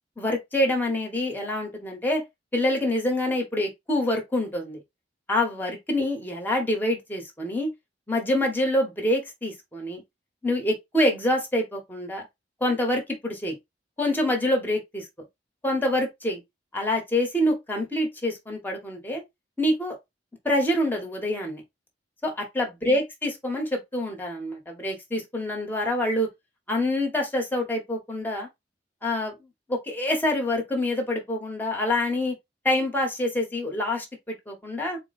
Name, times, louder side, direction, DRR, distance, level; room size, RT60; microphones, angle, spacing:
voice 1, 0.2-2.2 2.5-4.8 5.3-7.7 8.1-10.0 10.4-12.2 12.6-13.6 14.0-15.0 15.6-16.4 16.7-19.2 19.6-20.0 20.4-21.6 22.2-26.3 26.7-28.5 29.0-29.3 29.7-32.3 32.6-35.0, left 1 dB, 10° left, 1.2 m, -26 dB
4.2 x 2.2 x 4.1 m
head